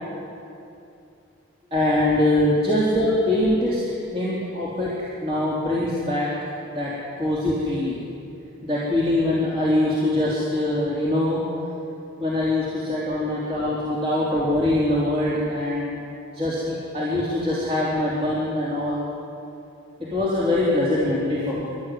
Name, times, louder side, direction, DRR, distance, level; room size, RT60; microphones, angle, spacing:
voice 1, 1.7-3.8 4.1-6.3 6.8-6.9 7.2-8.0 8.6-11.5 12.2-15.9 16.3-19.1 20.0-21.7, left 1 dB, 25° right, -8 dB, 3.7 m, -23 dB
26.0 x 12.5 x 9.5 m, 2.7 s
head